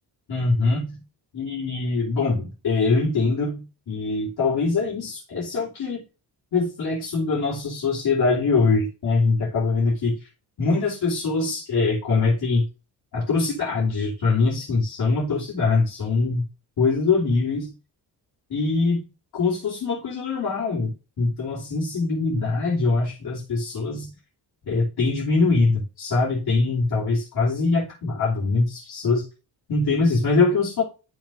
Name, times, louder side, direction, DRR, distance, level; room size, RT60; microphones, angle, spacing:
voice 1, 0.3-1.0 1.3-6.0 6.5-10.1 10.6-12.6 13.1-16.4 16.8-17.7 18.5-19.1 19.3-24.1 24.6-29.2 29.7-30.8, left 3 dB, 60° left, -6 dB, 3.1 m, -23 dB
12.0 x 6.0 x 2.6 m, 0.32 s
wide cardioid pair, 160°, 42 cm